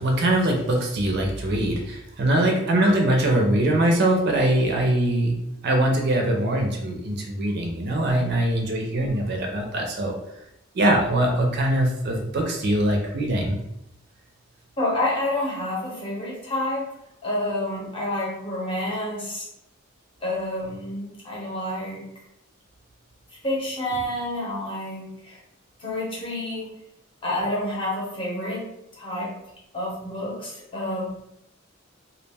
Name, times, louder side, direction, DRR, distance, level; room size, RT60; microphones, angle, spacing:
voice 1, 0.0-5.4 5.6-10.1 10.7-13.6, right 1 dB, 50° right, 1 dB, 0.4 m, -22 dB
voice 2, 14.8-16.9 17.2-19.4 20.2-22.0 23.4-25.4 25.8-26.7 27.2-28.7 29.0-29.3 29.7-31.1, left 1 dB, 25° left, -5 dB, 0.8 m, -28 dB
2.2 x 2.1 x 3.3 m, 0.82 s
head